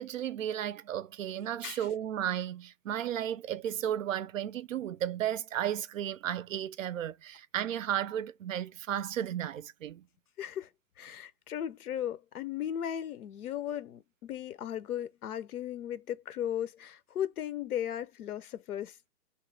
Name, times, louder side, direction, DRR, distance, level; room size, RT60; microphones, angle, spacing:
voice 1, 0.0-10.1, right 10 dB, 55° right, 0.5 m, -34 dB
voice 2, 10.4-10.7 11.0-19.1, left 10 dB, 65° left, 0.7 m, -36 dB
3.2 x 3.1 x 3.3 m
hypercardioid pair, 160°, 48 cm